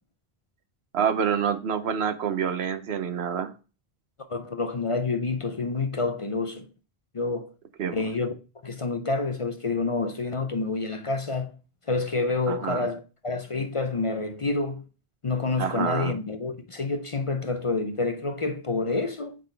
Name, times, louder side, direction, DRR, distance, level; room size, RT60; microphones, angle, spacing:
voice 1, 0.9-3.5 7.8-8.0 12.5-12.9 15.6-16.2, right 7 dB, 85° right, 1.1 m, -27 dB
voice 2, 4.3-6.7 7.1-7.5 7.9-8.3 8.6-11.6 11.9-14.9 15.2-19.4, left 3 dB, 40° left, 0.5 m, -28 dB
8.2 x 4.0 x 3.3 m
omnidirectional pair, 1.0 m